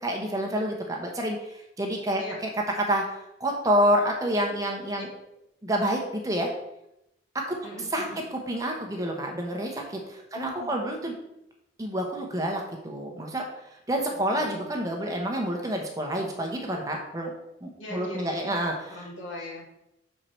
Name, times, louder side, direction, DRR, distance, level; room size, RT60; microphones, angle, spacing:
voice 1, 0.0-2.2 2.8-5.1 5.6-6.5 7.3-7.6 7.9-8.0 8.5-11.1 11.8-13.4 13.9-17.3 17.6-19.0, right 1 dB, 20° right, 1 dB, 1.0 m, -28 dB
voice 2, 7.6-8.2 10.3-10.8 14.1-14.8 17.8-18.6 18.9-19.6, left 1 dB, 85° left, -3 dB, 2.3 m, -41 dB
6.7 x 4.6 x 4.5 m, 0.84 s
head